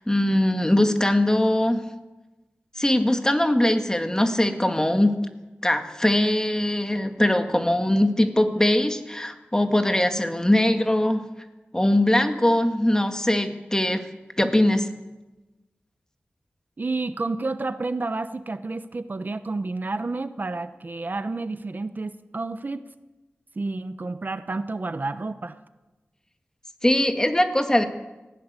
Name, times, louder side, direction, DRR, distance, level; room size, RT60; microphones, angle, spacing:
voice 1, 0.0-1.9 2.8-5.1 5.6-11.3 11.7-14.1 14.4-14.9 26.8-27.8, left 1 dB, 15° left, 6 dB, 2.1 m, -21 dB
voice 2, 16.8-22.8 23.6-25.6, right 3 dB, 50° right, 11 dB, 0.9 m, -30 dB
19.0 x 16.5 x 8.3 m, 1.1 s
wide cardioid pair, 70°, 4 cm